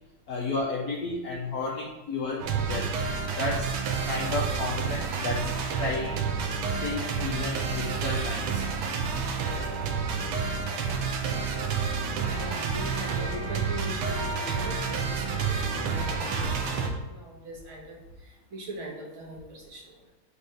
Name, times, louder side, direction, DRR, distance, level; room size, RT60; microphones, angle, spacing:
voice 1, 0.3-3.0 3.4-3.7 4.1-5.5 5.8-6.2 6.8-8.6, left 3 dB, 65° left, -1 dB, 0.9 m, -32 dB
sound 1, 2.4-16.9, right 5 dB, 85° right, 1.8 m, -29 dB
voice 2, 12.3-16.8 17.1-20.1, right 1 dB, 65° right, -1 dB, 2.1 m, -41 dB
6.5 x 3.5 x 5.4 m, 1.0 s
omnidirectional pair, 2.4 m